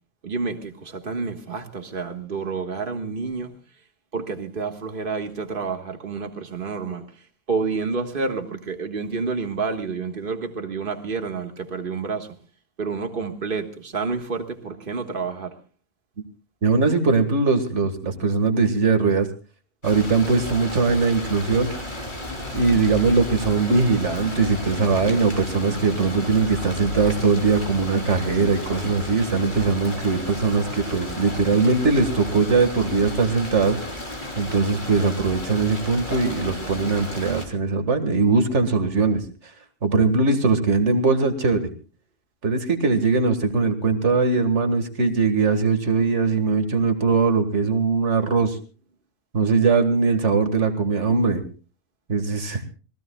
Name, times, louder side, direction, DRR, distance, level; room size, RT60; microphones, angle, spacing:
voice 1, 0.2-3.5 4.1-12.4 12.8-15.5, right 4 dB, 45° right, 1.8 m, -29 dB
voice 2, 16.6-19.3 19.8-21.7 22.5-33.8 34.4-39.2 39.8-41.6 42.4-48.6 49.3-51.4 52.1-52.6, right 4 dB, 75° right, 2.2 m, -21 dB
sound 1, 19.8-37.5, left 1 dB, 40° left, 3.7 m, -34 dB
26.5 x 18.5 x 2.3 m
omnidirectional pair, 1.2 m